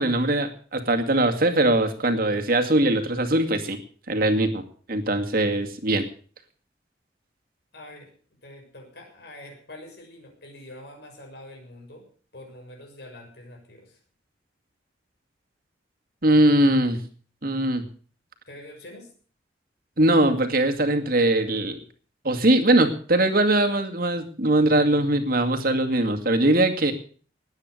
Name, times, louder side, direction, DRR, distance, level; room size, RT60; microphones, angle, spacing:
voice 1, 0.0-3.8 4.1-6.1 16.2-17.0 17.4-17.9 20.0-21.8 22.2-26.9, right 1 dB, 55° right, 5 dB, 2.3 m, -21 dB
voice 2, 7.7-8.1 8.4-12.1 12.3-14.0 18.5-19.1, left 1 dB, 65° left, 2 dB, 6.6 m, -45 dB
20.0 x 9.0 x 6.6 m, 0.43 s
head